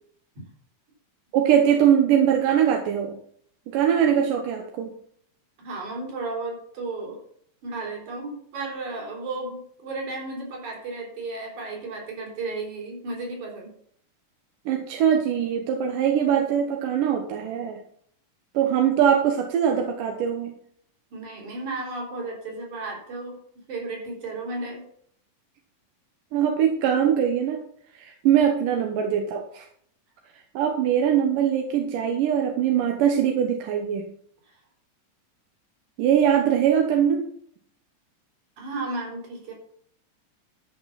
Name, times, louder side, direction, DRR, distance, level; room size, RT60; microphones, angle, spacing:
voice 1, 1.3-3.2 3.7-5.0 14.7-17.8 18.5-20.5 26.3-27.6 27.9-29.6 30.5-34.1 36.0-37.2, right 9 dB, 90° right, 3 dB, 2.7 m, -22 dB
voice 2, 5.6-7.2 7.6-13.7 21.1-23.4 23.7-24.8 34.5-34.6 38.6-39.5, right 3 dB, 65° right, -1 dB, 5.3 m, -33 dB
13.0 x 5.7 x 5.8 m, 0.63 s
omnidirectional pair, 3.7 m